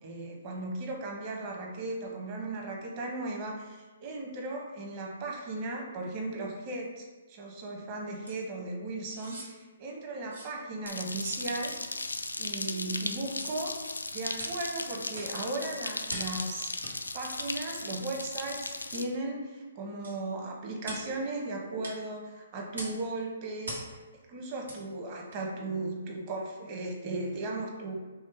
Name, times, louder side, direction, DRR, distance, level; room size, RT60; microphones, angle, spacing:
voice 1, 0.0-11.8 12.4-13.7 14.1-23.8 24.3-27.9, right 2 dB, 35° right, 0 dB, 1.0 m, -36 dB
sound 1, 8.3-8.4 9.1-9.5 10.3-10.5 11.2-11.4 12.2-12.4 13.2-13.6 14.4-14.6 15.1-15.4 16.1-16.4 16.8-16.9 17.4-17.6 18.2-18.4 18.9-19.1 20.0-20.2 20.8-21.1 21.8-22.0 22.7-23.0 23.6-23.9 24.6-24.8 25.3-25.4, right 1 dB, 85° right, 1.3 m, -42 dB
sound 2, 10.9-19.0, left 2 dB, 90° left, 0.3 m, -37 dB
3.7 x 3.2 x 4.4 m, 1.3 s
figure-of-eight pair, 130°, 0 cm